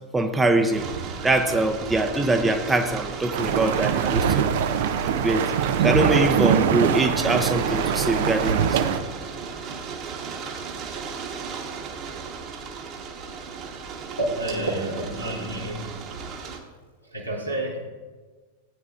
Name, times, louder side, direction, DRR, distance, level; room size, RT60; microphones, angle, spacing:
voice 1, 0.1-0.9 1.2-4.5 5.1-5.4 5.8-8.8, right 2 dB, 10° right, 6 dB, 0.7 m, -23 dB
sound 1, 0.7-6.5 7.2-16.6, right 5 dB, 35° right, 1.3 m, -36 dB
sound 2, 3.3-9.0, right 8 dB, 55° right, 0.6 m, -23 dB
voice 2, 14.1-16.1 17.1-17.8, right 1 dB, 90° right, -5 dB, 2.2 m, -29 dB
16.0 x 9.2 x 2.5 m, 1.4 s
figure-of-eight pair, 90°, 0 cm